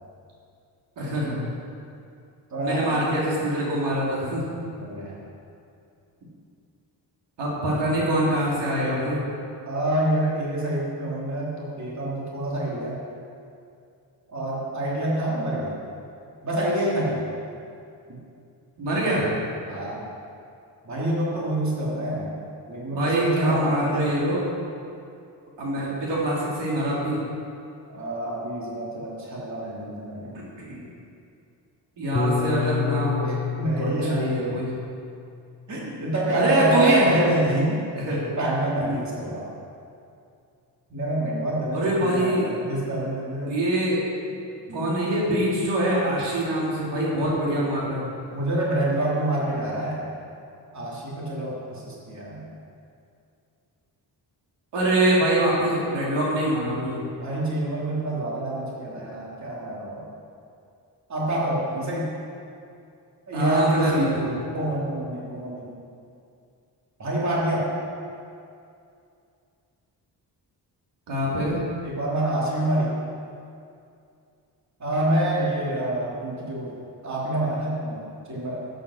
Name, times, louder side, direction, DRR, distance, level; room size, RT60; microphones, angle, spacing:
voice 1, 1.0-1.4 2.6-4.4 7.4-9.2 18.8-19.3 22.9-24.5 25.6-27.2 30.6-30.8 32.0-33.4 33.8-34.7 36.3-37.1 37.4-37.6 38.0-38.3 41.7-42.5 43.5-44.0 44.7-48.0 54.7-57.0 63.3-64.4 71.1-71.6, right 1 dB, 85° right, -5 dB, 3.3 m, -24 dB
voice 2, 2.5-3.0 4.8-5.2 9.7-13.0 14.3-15.8 16.4-17.4 18.1-18.2 19.7-20.0 20.8-22.3 22.7-24.1 27.9-30.3 33.2-34.4 35.7-37.9 38.4-39.5 40.9-43.6 44.7-45.0 48.3-50.1 50.7-52.4 57.2-60.1 61.1-62.1 63.3-64.1 64.5-65.7 67.0-67.7 71.8-72.9 74.8-78.6, right 1 dB, 40° right, -5 dB, 3.1 m, -27 dB
Piano, 32.2-36.6, left 5 dB, 15° left, 0.9 m, -30 dB
12.0 x 9.1 x 6.4 m, 2.5 s
cardioid pair, 125°, 41 cm